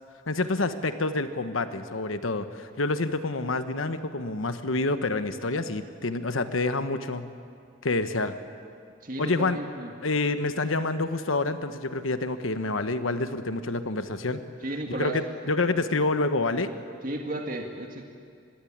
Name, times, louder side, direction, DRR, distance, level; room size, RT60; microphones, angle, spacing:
voice 1, 0.3-7.3 7.8-8.4 9.2-9.6 10.0-14.4 14.9-16.7, left 3 dB, 85° left, 10 dB, 1.2 m, -28 dB
voice 2, 9.0-9.9 14.6-15.2 17.0-18.0, right 1 dB, 45° right, 2 dB, 2.0 m, -33 dB
25.5 x 21.0 x 8.7 m, 2.4 s
head